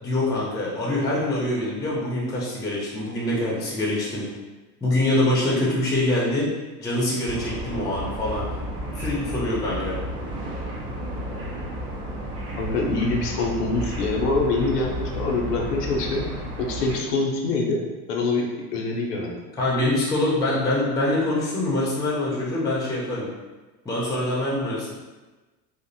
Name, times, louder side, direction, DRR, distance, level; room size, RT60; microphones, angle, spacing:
voice 1, 0.0-4.2 4.8-6.4 6.8-8.5 8.9-10.0 19.6-23.3 23.8-24.9, left 1 dB, 10° left, -5 dB, 0.5 m, -24 dB
sound 1, 7.3-17.0, equal, 30° right, 0.8 m, -32 dB
voice 2, 12.6-16.3 16.6-17.8 18.1-19.3, left 3 dB, 75° left, 0 dB, 0.6 m, -25 dB
2.6 x 2.1 x 2.6 m, 1.2 s
hypercardioid pair, 75°, 49 cm